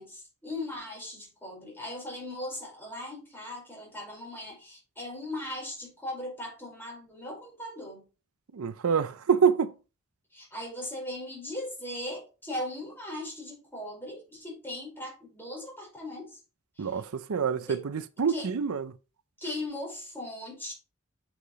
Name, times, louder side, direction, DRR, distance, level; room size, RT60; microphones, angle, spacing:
voice 1, 0.0-8.0 10.3-16.4 16.8-17.0 17.5-17.8 18.3-18.5 19.4-20.7, left 1 dB, 10° left, 4.8 m, -38 dB
voice 2, 8.5-9.7 16.8-18.8, right 6 dB, 80° right, 0.5 m, -26 dB
8.3 x 5.7 x 3.1 m
head